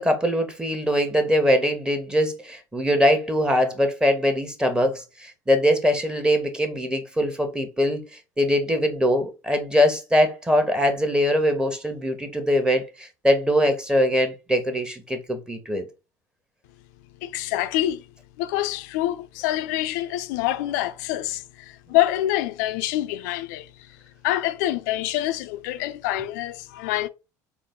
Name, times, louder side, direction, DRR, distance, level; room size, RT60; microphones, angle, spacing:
voice 1, 0.0-15.8, equal, 10° right, 1.0 m, -22 dB
voice 2, 17.2-18.1 18.4-24.0 24.2-27.1, left 14 dB, 75° left, 0.4 m, -26 dB
3.8 x 2.1 x 3.6 m
hypercardioid pair, 80°, 10 cm